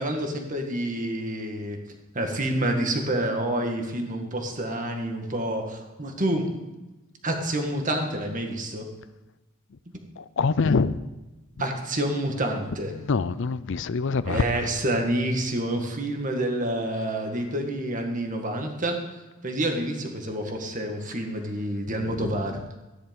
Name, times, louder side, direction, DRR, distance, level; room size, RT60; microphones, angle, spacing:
voice 1, 0.0-1.8 2.1-6.5 7.2-8.9 11.6-12.9 14.3-19.0 19.4-22.8, right 1 dB, 35° right, 4 dB, 1.8 m, -28 dB
voice 2, 10.2-11.0 12.9-14.4 22.1-22.4, left 4 dB, 60° left, 17 dB, 0.5 m, -25 dB
14.0 x 10.5 x 5.3 m, 1.1 s
head